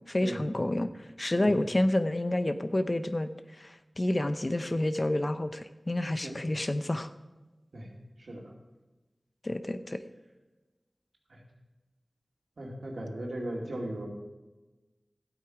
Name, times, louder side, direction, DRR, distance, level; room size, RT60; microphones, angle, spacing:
voice 1, 0.1-0.9 1.2-3.3 3.6-7.1 9.4-10.0, left 1 dB, 40° left, 10 dB, 0.7 m, -29 dB
voice 2, 12.6-14.1, right 1 dB, 80° right, -1 dB, 2.5 m, -37 dB
12.5 x 8.4 x 4.9 m, 1.1 s
cardioid pair, 40°, 0 cm